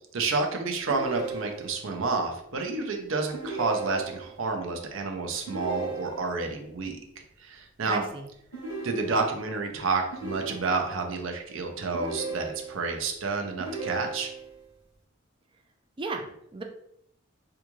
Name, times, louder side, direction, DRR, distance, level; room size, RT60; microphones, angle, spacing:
voice 1, 0.1-7.0 7.4-8.0 8.8-14.3, right 3 dB, 65° right, 3 dB, 0.6 m, -29 dB
sound 1, 0.9-1.9 3.3-4.4 5.5-6.5 8.5-9.5 10.1-11.1 11.9-13.0 13.6-14.6, right 3 dB, 60° left, 1.5 m, -37 dB
voice 2, 7.9-8.2 16.0-16.6, right 3 dB, 25° right, 4 dB, 0.3 m, -34 dB
3.5 x 2.4 x 3.0 m, 0.76 s
head